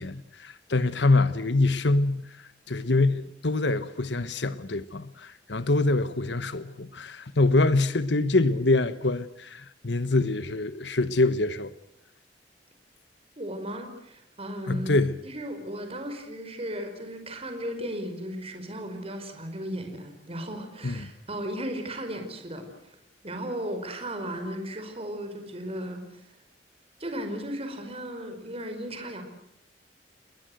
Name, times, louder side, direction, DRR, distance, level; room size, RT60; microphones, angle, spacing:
voice 1, 0.0-11.7 14.7-15.1 20.8-21.1, left 2 dB, 75° left, 1.2 m, -25 dB
voice 2, 13.4-15.0 15.2-23.0 23.2-26.2 27.0-29.2, equal, 35° right, 5.0 m, -35 dB
30.0 x 21.0 x 7.9 m
head